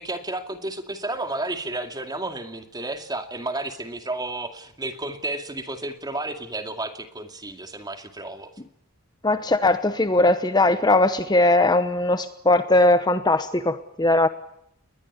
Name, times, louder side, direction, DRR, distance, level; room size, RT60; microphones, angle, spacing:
voice 1, 0.0-8.5, right 2 dB, 20° right, 7 dB, 2.3 m, -32 dB
voice 2, 9.2-14.3, left 2 dB, 20° left, 10 dB, 1.0 m, -19 dB
21.0 x 21.0 x 9.6 m, 0.74 s
head